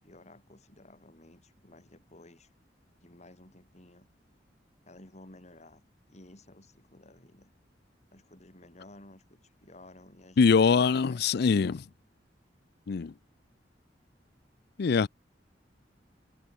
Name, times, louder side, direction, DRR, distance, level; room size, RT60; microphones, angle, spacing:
voice 1, 0.0-2.5 3.0-4.1 4.8-7.5 8.1-11.3 11.7-11.8, left 1 dB, 40° left, 3.7 m, -54 dB
voice 2, 10.4-11.8 12.9-13.1 14.8-15.1, left 5 dB, 60° left, 0.4 m, -23 dB
head